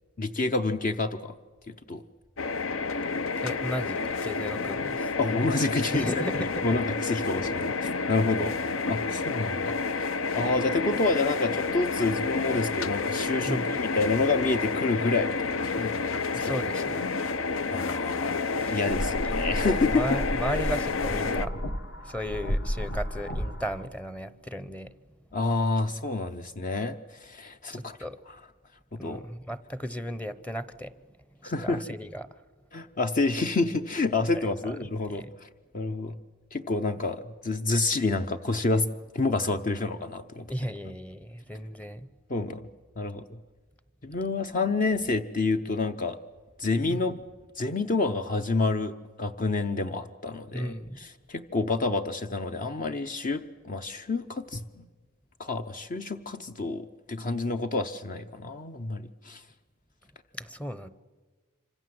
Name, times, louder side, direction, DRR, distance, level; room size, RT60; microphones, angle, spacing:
voice 1, 0.2-1.4 1.7-2.0 5.2-6.2 6.6-9.8 10.3-16.1 16.4-16.5 17.7-20.2 25.3-28.0 28.9-29.2 31.4-31.8 32.7-35.5 35.7-36.2 36.5-40.5 42.3-42.7 43.0-43.4 44.0-46.2 46.6-47.2 47.6-54.9 55.4-59.4, left 3 dB, 40° left, 8 dB, 0.8 m, -28 dB
sound 1, 2.4-21.5, left 4 dB, 70° left, 0.8 m, -30 dB
voice 2, 3.4-5.2 5.9-6.7 13.5-13.8 16.3-17.1 18.6-18.8 19.6-21.5 22.0-24.9 27.7-28.2 29.0-31.0 31.4-32.4 34.3-34.8 35.1-35.3 40.5-42.1 46.9-47.1 50.5-51.0 60.3-60.9, equal, 5° left, 14 dB, 0.7 m, -35 dB
sound 2, 18.9-23.8, equal, 55° left, 1.8 m, -32 dB
26.5 x 25.0 x 7.8 m, 1.4 s
head